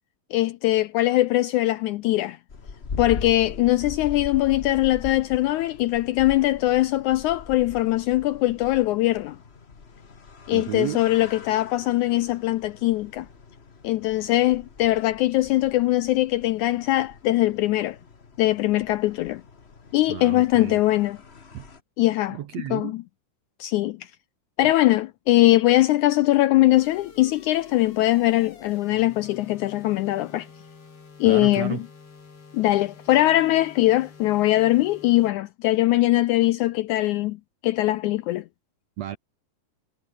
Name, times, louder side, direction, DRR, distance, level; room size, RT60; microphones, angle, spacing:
voice 1, 0.3-2.4 3.0-9.4 10.5-13.3 13.8-18.0 18.4-19.4 19.9-21.2 22.0-22.4 22.7-23.0 23.6-24.1 24.6-30.5 31.2-31.8 32.5-37.4 37.6-38.4, left 16 dB, 85° left, 1.8 m, -21 dB
sound 1, 2.5-21.8, left 5 dB, 65° left, 0.6 m, -41 dB
voice 2, 10.5-11.0 20.1-20.8 21.5-21.7 22.3-22.9 24.6-24.7 31.2-31.8 39.0-39.2, right 13 dB, 70° right, 1.6 m, -32 dB
sound 2, 26.7-35.3, left 5 dB, 40° left, 4.7 m, -48 dB
omnidirectional pair, 4.0 m